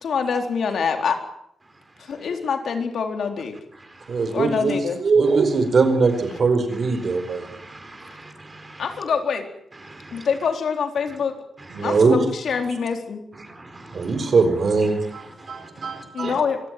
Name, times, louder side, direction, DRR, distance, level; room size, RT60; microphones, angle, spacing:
voice 1, 0.0-1.2 2.0-3.6 4.3-5.0 8.8-9.5 10.1-11.3 11.8-13.2 16.1-16.6, left 6 dB, 60° left, 5 dB, 4.0 m, -25 dB
voice 2, 4.1-4.7 5.0-7.5 11.8-12.2 13.9-16.3, right 4 dB, 45° right, 9 dB, 4.6 m, -21 dB
voice 3, 7.4-8.8 9.9-10.0 13.6-13.9 14.2-14.3 15.9-16.0, right 2 dB, 20° right, 7 dB, 4.7 m, -43 dB
25.5 x 16.5 x 9.2 m, 0.74 s
wide cardioid pair, 155°, 0 cm